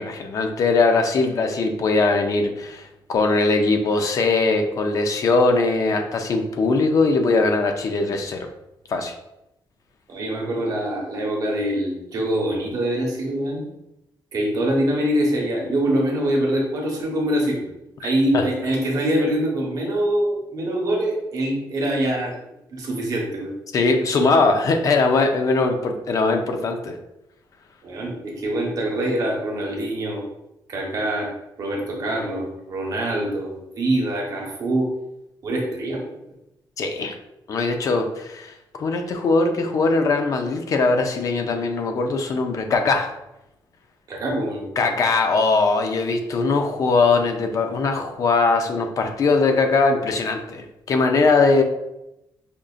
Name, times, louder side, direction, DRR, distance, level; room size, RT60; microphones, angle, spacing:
voice 1, 0.0-8.5 8.9-9.1 18.3-18.5 23.7-27.0 36.8-37.2 37.5-43.1 44.8-51.6, left 3 dB, 45° left, 5 dB, 0.4 m, -20 dB
voice 2, 10.1-13.6 14.3-17.7 18.0-22.3 22.7-23.5 27.8-30.2 30.7-31.3 31.6-34.9 35.4-36.0 44.1-44.6, right 1 dB, 50° right, -1 dB, 0.9 m, -24 dB
5.1 x 2.4 x 2.4 m, 0.88 s
wide cardioid pair, 175°, 8 cm